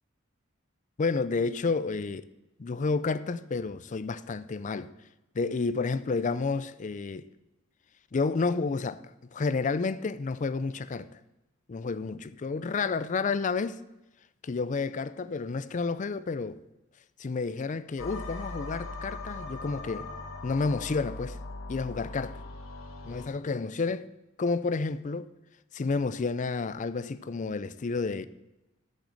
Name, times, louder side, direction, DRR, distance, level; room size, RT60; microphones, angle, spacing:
voice 1, 1.0-2.2 2.6-4.9 5.3-7.3 8.1-9.0 9.3-11.2 11.7-13.8 14.4-16.6 17.2-20.1 20.4-21.4 21.7-22.4 23.0-24.1 24.4-25.3 25.7-28.3, left 4 dB, 40° left, 0.4 m, -30 dB
sound 1, 18.0-23.3, left 2 dB, 85° left, 1.5 m, -40 dB
8.4 x 6.5 x 7.6 m
head